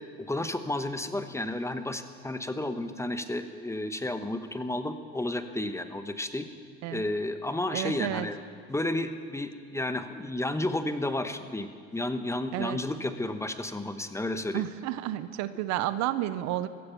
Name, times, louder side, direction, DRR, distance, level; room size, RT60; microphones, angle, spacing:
voice 1, 0.2-6.5 6.9-8.4 8.7-14.6, left 1 dB, 10° left, 9 dB, 1.0 m, -32 dB
voice 2, 7.7-8.3 12.5-12.8 14.5-16.7, right 14 dB, 70° right, 14 dB, 0.8 m, -31 dB
15.0 x 14.5 x 5.8 m, 2.3 s
supercardioid pair, 85°, 29 cm